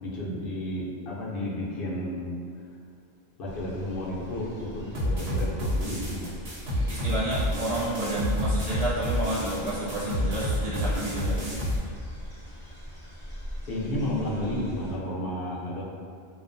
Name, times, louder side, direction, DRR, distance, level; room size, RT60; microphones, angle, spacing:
voice 1, 0.0-2.3 3.4-6.3 13.7-15.8, left 1 dB, 65° left, -5 dB, 0.7 m, -32 dB
sound 1, 3.4-14.9, equal, 15° left, 0.5 m, -43 dB
sound 2, 4.9-11.8, equal, 75° right, 1.0 m, -29 dB
voice 2, 6.8-11.4, right 1 dB, 50° right, -9 dB, 0.5 m, -30 dB
2.3 x 2.2 x 2.5 m, 2.3 s
omnidirectional pair, 1.1 m